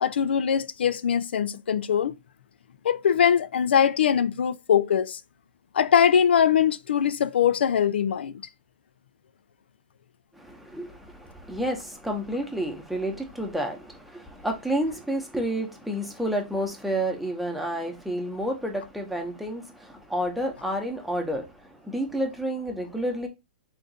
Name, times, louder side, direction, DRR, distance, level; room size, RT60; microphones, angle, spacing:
voice 1, 0.0-2.2 2.8-5.2 5.7-8.4, left 8 dB, 85° left, 0.4 m, -22 dB
voice 2, 10.3-23.3, right 1 dB, ahead, 0.8 m, -30 dB
3.8 x 2.5 x 4.0 m
hypercardioid pair, 140°, 6 cm